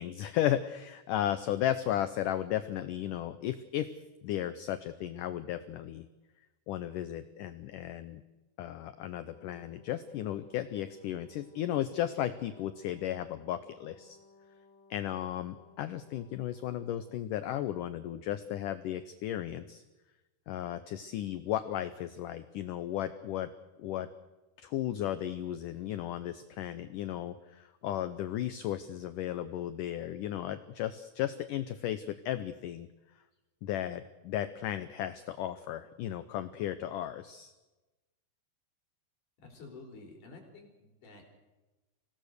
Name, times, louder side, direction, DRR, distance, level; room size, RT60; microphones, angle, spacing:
voice 1, 0.0-3.9 4.2-6.1 6.7-8.2 8.6-14.2 14.9-19.8 20.5-23.5 23.8-24.1 24.6-32.9 33.6-37.5, left 12 dB, 90° left, 12 dB, 1.8 m, -35 dB
Brass instrument, 9.1-17.8, left 3 dB, 65° right, 8.5 m, -61 dB
voice 2, 39.4-41.2, left 3 dB, 50° left, 1 dB, 5.9 m, -50 dB
25.5 x 18.0 x 6.6 m, 1.1 s
omnidirectional pair, 4.8 m